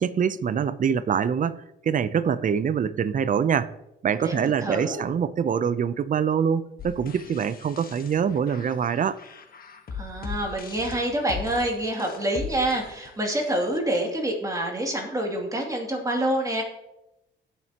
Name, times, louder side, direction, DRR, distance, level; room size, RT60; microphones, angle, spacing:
voice 1, 0.0-3.7 4.0-9.2, right 7 dB, 40° right, 0.6 m, -24 dB
voice 2, 4.2-5.0 9.9-16.6, right 1 dB, 15° right, 2.6 m, -27 dB
sound 1, 6.8-13.8, left 5 dB, 45° left, 1.4 m, -39 dB
17.0 x 6.7 x 2.9 m
cardioid pair, 90°, 20 cm